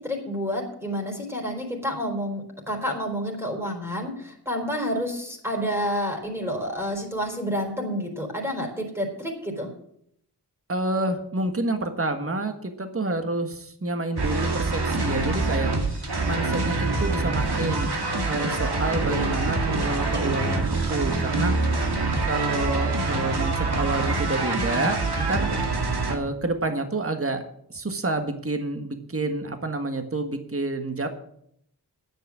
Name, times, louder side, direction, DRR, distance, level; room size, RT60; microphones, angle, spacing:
voice 1, 0.0-9.7 18.9-19.4, equal, 5° right, 1 dB, 4.0 m, -29 dB
voice 2, 10.7-15.7 16.2-18.0 18.3-21.5 22.2-25.5 26.1-27.4 27.7-31.1, right 2 dB, 35° right, 7 dB, 1.5 m, -28 dB
sound 1, 14.1-26.1, right 3 dB, 70° right, 2.1 m, -25 dB
10.0 x 8.7 x 7.5 m, 0.70 s
wide cardioid pair, 50°, 40 cm